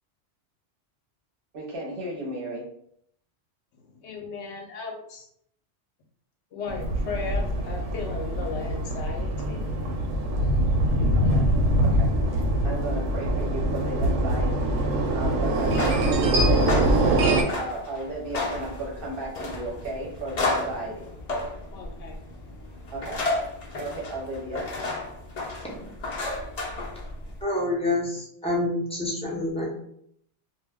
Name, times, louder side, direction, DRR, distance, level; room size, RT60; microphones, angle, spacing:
voice 1, 1.5-2.6 11.1-11.5 11.8-14.9 15.1-21.1 22.9-23.2 23.8-24.7, right 2 dB, 55° right, -2 dB, 0.8 m, -34 dB
voice 2, 3.9-5.3 6.5-9.6 21.7-22.2, left 4 dB, 75° left, 1 dB, 0.9 m, -36 dB
sound 1, 6.7-17.4, right 1 dB, 85° right, 0.9 m, -23 dB
sound 2, 15.5-27.4, left 2 dB, 45° left, 0.6 m, -33 dB
voice 3, 27.4-29.7, left 2 dB, 5° left, -5 dB, 0.5 m, -27 dB
2.2 x 2.1 x 3.4 m, 0.69 s
omnidirectional pair, 1.2 m